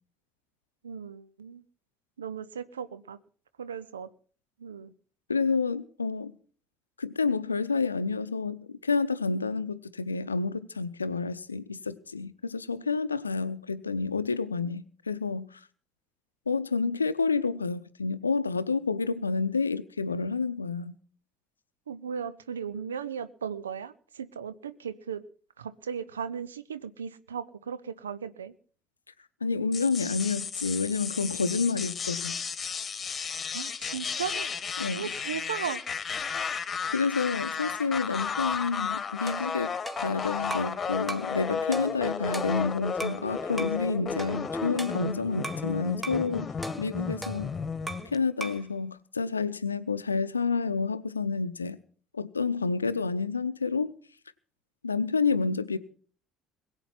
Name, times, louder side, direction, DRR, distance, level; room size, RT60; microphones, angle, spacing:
voice 1, 0.8-1.6 2.2-3.2 3.6-4.1 4.6-4.9 21.9-25.2 25.6-28.5 33.5-34.5 34.9-35.8, right 7 dB, 80° right, 0.6 m, -36 dB
voice 2, 5.3-6.3 7.0-15.6 16.5-20.9 29.4-32.4 34.8-35.1 36.9-39.7 40.0-46.5 46.8-47.5 48.1-51.8 52.1-53.9 54.8-55.8, left 4 dB, 85° left, 0.6 m, -29 dB
sound 1, 29.7-48.2, left 6 dB, 30° left, 1.4 m, -33 dB
sound 2, 39.3-40.8 41.1-41.4 41.7-43.2 43.6-43.8 44.2-45.7 46.0-46.3 46.6-48.1 48.4-48.7, right 2 dB, 10° right, 1.7 m, -39 dB
21.5 x 8.1 x 5.8 m
figure-of-eight pair, 55°, 0 cm